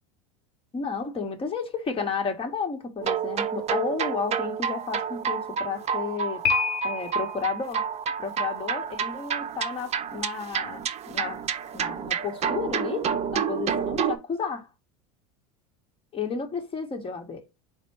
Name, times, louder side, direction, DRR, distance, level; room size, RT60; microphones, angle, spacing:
voice 1, 0.7-6.5 6.8-7.8 8.2-11.4 11.7-14.7 16.1-17.5, left 5 dB, 30° left, 1.3 m, -32 dB
sound 1, 3.0-14.2, right 7 dB, 35° right, 0.7 m, -29 dB
Piano, 6.4-7.4, left 8 dB, 70° left, 1.0 m, -27 dB
4.2 x 2.3 x 4.4 m
hypercardioid pair, 100°, 20 cm